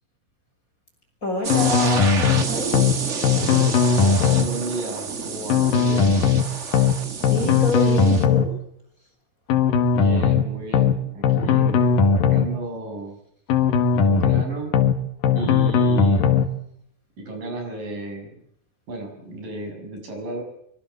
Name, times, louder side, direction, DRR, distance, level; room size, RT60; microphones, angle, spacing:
voice 1, 1.2-2.7 7.3-8.4, left 1 dB, 25° left, 3 dB, 6.5 m, -27 dB
sound 1, 1.4-8.2, right 5 dB, 45° right, 0.9 m, -30 dB
sound 2, 1.5-2.4 2.7-3.0 3.2-4.5 5.5-6.4 6.7-7.0 7.2-8.5 9.5-10.4 10.7-11.0 11.2-12.5 13.5-14.4 14.7-15.0 15.2-16.5, left 6 dB, 90° left, 3.5 m, -18 dB
voice 2, 4.0-6.3 9.9-13.2 14.0-14.8 15.3-16.4 17.2-18.3 18.9-20.4, right 1 dB, 75° right, 4 dB, 8.5 m, -33 dB
24.5 x 23.5 x 7.0 m, 0.74 s
omnidirectional pair, 3.9 m